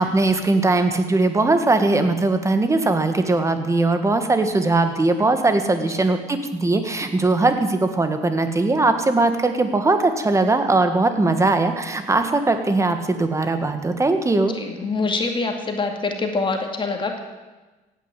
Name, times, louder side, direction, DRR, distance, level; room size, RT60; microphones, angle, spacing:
voice 1, 0.0-14.6, right 2 dB, 15° right, 7 dB, 1.8 m, -20 dB
voice 2, 5.8-6.1 14.4-17.2, left 3 dB, 30° left, 3 dB, 2.3 m, -25 dB
16.0 x 9.6 x 9.1 m, 1.2 s
cardioid pair, 110°, 17 cm